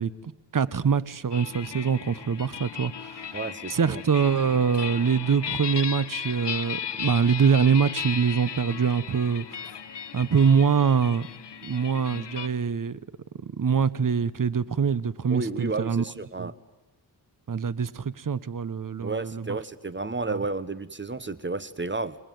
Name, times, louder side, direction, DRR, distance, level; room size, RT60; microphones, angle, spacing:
voice 1, 0.0-3.4 3.7-9.6 10.1-11.3 11.6-13.0 13.4-16.0 16.4-16.5 17.5-19.6 20.3-20.4, right 6 dB, 50° right, 1.0 m, -24 dB
sound 1, 1.3-12.5, left 8 dB, 75° left, 1.2 m, -36 dB
voice 2, 3.3-4.0 15.3-16.5 19.0-22.2, right 3 dB, 25° right, 1.1 m, -32 dB
28.5 x 20.0 x 9.3 m
wide cardioid pair, 110°, 42 cm